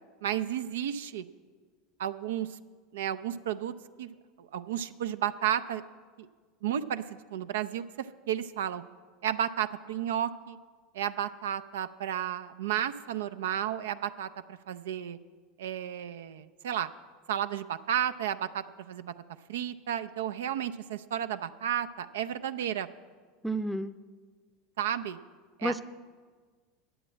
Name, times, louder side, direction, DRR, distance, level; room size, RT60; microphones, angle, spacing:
voice 1, 0.2-1.2 2.0-2.6 2.9-5.8 6.2-6.3 6.6-8.8 9.2-10.6 10.9-15.2 15.6-16.9 17.3-19.1 19.5-22.9 24.8-25.2 25.6-25.8, right 10 dB, 75° right, 11 dB, 0.4 m, -33 dB
voice 2, 23.4-23.9 25.6-25.8, right 1 dB, ahead, 12 dB, 0.6 m, -30 dB
11.0 x 8.5 x 7.4 m, 1.5 s
hypercardioid pair, 85°, 0 cm